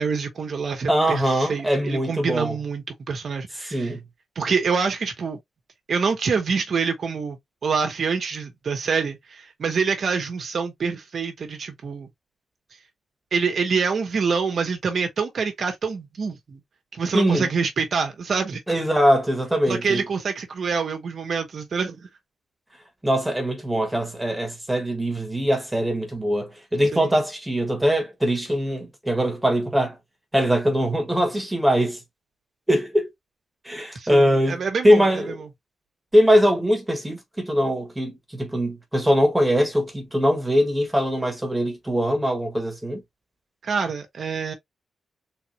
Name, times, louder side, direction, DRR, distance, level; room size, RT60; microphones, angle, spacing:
voice 1, 0.0-3.9 4.3-5.4 5.9-12.1 13.3-16.6 16.9-18.6 19.7-22.1 26.9-27.1 33.9-35.5 43.6-44.5, right 5 dB, 60° right, 1.3 m, -26 dB
voice 2, 0.9-2.5 3.6-4.0 17.1-17.5 18.7-20.0 23.0-29.9 30.3-32.0 32.7-33.1 33.6-34.6 34.8-35.4 36.1-43.0, equal, 10° right, 1.4 m, -22 dB
4.0 x 2.5 x 3.0 m
wide cardioid pair, 120°, 0 cm